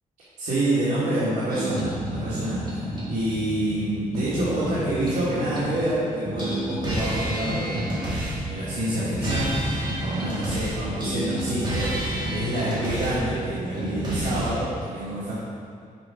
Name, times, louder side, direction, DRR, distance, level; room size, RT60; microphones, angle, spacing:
voice 1, 0.4-9.5 10.0-15.4, right 1 dB, 80° right, -12 dB, 2.0 m, -27 dB
sound 1, 1.5-5.9 6.2-14.5, right 1 dB, 30° right, 2.0 m, -29 dB
6.7 x 5.4 x 5.1 m, 2.3 s
wide cardioid pair, 155°, 14 cm